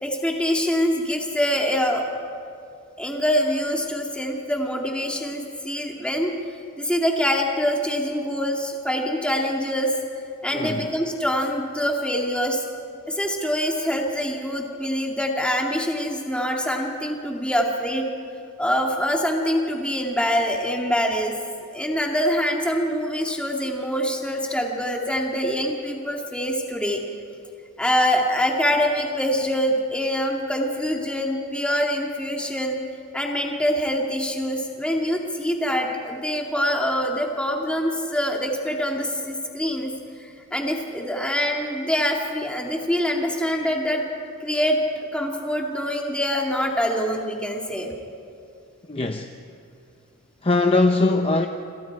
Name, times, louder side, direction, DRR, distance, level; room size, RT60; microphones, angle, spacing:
voice 1, 0.0-2.0 3.0-6.3 6.8-9.9 10.4-12.6 13.1-18.1 18.6-21.4 21.7-27.0 27.8-32.8 33.1-39.9 40.2-44.0 44.4-47.9, equal, 5° left, 0 dB, 2.3 m, -24 dB
voice 2, 10.5-10.9 48.9-49.3 50.4-51.5, left 3 dB, 25° left, 5 dB, 0.8 m, -21 dB
28.0 x 26.5 x 4.8 m, 2.5 s
head